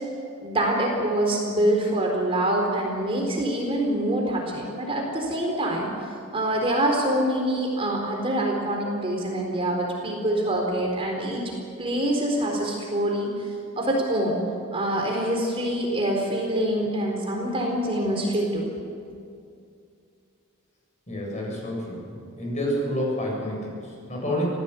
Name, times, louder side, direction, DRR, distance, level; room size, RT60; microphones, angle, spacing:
voice 1, 0.4-5.9 6.3-11.4 11.8-13.3 13.8-14.4 14.7-18.7, right 1 dB, 25° right, 0 dB, 3.9 m, -25 dB
voice 2, 21.1-22.1 22.4-24.4, equal, 35° left, -2 dB, 7.6 m, -29 dB
26.5 x 17.5 x 8.4 m, 2.4 s
head